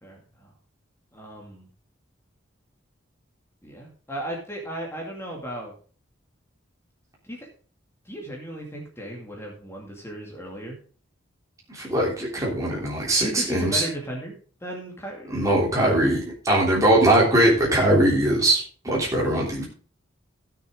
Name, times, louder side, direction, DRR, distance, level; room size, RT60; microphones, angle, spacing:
voice 1, 0.0-0.5 1.1-1.7 3.6-5.7 7.2-7.5 8.1-10.8 13.2-14.3 14.6-15.3, right 1 dB, 10° left, -1 dB, 2.3 m, -35 dB
voice 2, 11.7-13.8 15.3-19.6, right 1 dB, 15° right, -4 dB, 3.2 m, -21 dB
15.0 x 6.7 x 3.7 m, 0.39 s
head